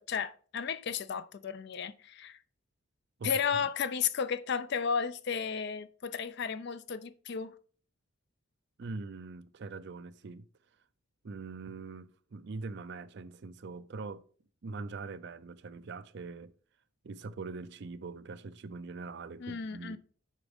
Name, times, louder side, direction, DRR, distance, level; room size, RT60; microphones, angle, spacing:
voice 1, 0.0-2.4 3.2-7.6 19.4-20.0, left 6 dB, 50° left, 0.4 m, -33 dB
voice 2, 3.2-3.6 8.8-10.5 11.2-14.2 14.6-16.5 17.0-20.0, right 3 dB, 55° right, 0.4 m, -42 dB
8.2 x 5.1 x 3.5 m
head